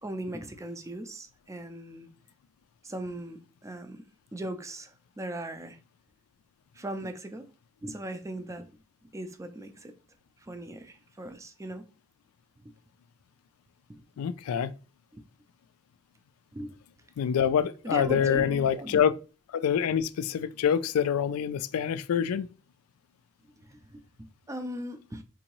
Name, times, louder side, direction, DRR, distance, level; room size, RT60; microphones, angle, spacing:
voice 1, 0.0-2.1 2.8-4.0 4.3-5.8 6.7-7.5 7.8-8.7 9.0-9.9 10.4-11.9 13.9-14.0 15.1-15.2 16.5-16.8 17.8-19.0 23.6-25.2, right 1 dB, 15° right, 0.4 m, -38 dB
voice 2, 14.2-14.7 17.2-19.1 19.5-22.5, left 8 dB, 80° left, 0.3 m, -26 dB
3.8 x 2.6 x 2.9 m
head